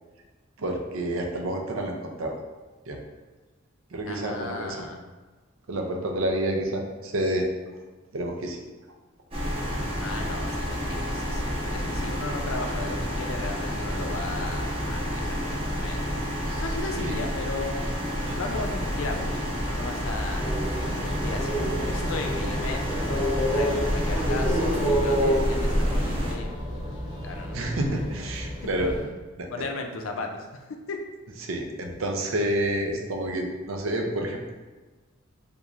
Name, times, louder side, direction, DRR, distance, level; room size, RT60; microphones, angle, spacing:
voice 1, 0.6-2.4 2.9-3.0 3.9-4.9 5.7-7.5 8.1-8.6 16.5-16.6 17.0-17.2 18.3-18.4 27.5-28.9 29.4-29.5 31.4-34.5, right 1 dB, 75° right, 2 dB, 0.5 m, -29 dB
voice 2, 4.1-5.0 10.0-16.0 16.6-17.8 18.3-20.4 21.0-26.6 27.2-27.6 28.8-28.9 29.5-31.0, left 3 dB, 70° left, 3 dB, 0.5 m, -36 dB
sound 1, 9.3-26.3, equal, 30° right, 0.7 m, -30 dB
sound 2, 20.4-29.0, equal, 25° left, 0.9 m, -28 dB
3.6 x 3.0 x 2.4 m, 1.3 s
head